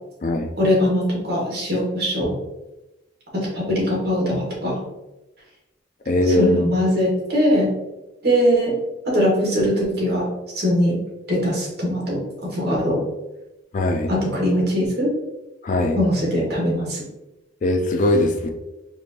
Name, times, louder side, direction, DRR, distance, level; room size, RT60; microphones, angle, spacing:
voice 1, 0.6-2.3 3.3-4.8 6.2-7.7 8.2-8.7 9.0-10.3 10.5-11.0 11.3-13.0 14.1-15.1 15.9-17.0, equal, 50° right, -4 dB, 1.5 m, -21 dB
voice 2, 6.1-6.7 13.7-14.1 15.6-16.0 17.6-18.5, left 1 dB, 40° left, 4 dB, 0.3 m, -20 dB
4.4 x 2.6 x 2.9 m, 1.0 s
head